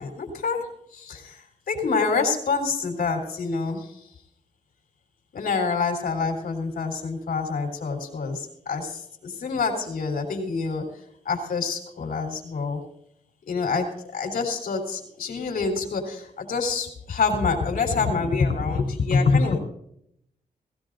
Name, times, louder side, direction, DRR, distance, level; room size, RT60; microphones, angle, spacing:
voice 1, 0.0-4.1 5.3-12.8 13.5-19.6, left 4 dB, 85° left, 3 dB, 3.5 m, -26 dB
20.0 x 16.0 x 2.6 m, 0.72 s
wide cardioid pair, 125°, 15 cm